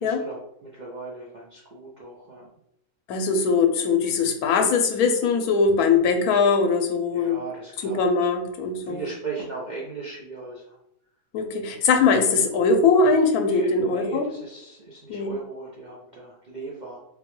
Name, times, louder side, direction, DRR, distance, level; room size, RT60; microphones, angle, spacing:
voice 1, 0.0-2.5 7.1-8.3 8.8-10.8 13.5-17.0, right 4 dB, 65° right, -5 dB, 0.4 m, -37 dB
voice 2, 3.1-7.4 7.8-9.0 11.3-14.3 15.1-15.3, left 4 dB, 85° left, 4 dB, 1.1 m, -21 dB
3.7 x 2.2 x 2.9 m, 0.78 s
omnidirectional pair, 1.5 m